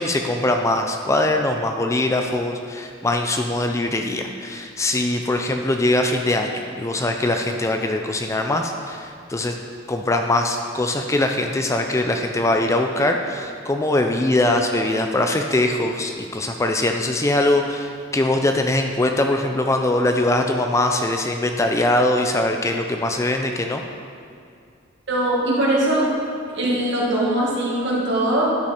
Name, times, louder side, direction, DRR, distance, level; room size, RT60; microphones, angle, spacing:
voice 1, 0.0-9.5 9.9-23.8, left 1 dB, 15° left, 4 dB, 0.4 m, -22 dB
voice 2, 25.1-26.1 26.5-28.5, right 1 dB, 65° right, -4 dB, 1.9 m, -21 dB
9.9 x 5.7 x 4.2 m, 2.4 s
head